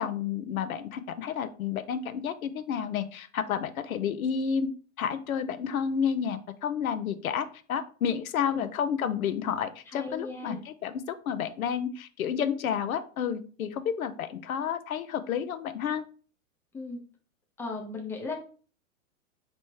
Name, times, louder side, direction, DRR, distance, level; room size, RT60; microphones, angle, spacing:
voice 1, 0.0-4.7 5.0-16.0, left 7 dB, 75° left, 11 dB, 0.6 m, -30 dB
voice 2, 8.4-8.7 9.9-10.6 16.7-17.0 17.6-18.3, left 3 dB, 5° left, 0 dB, 0.6 m, -37 dB
3.2 x 3.0 x 4.6 m, 0.40 s
hypercardioid pair, 120°, 43 cm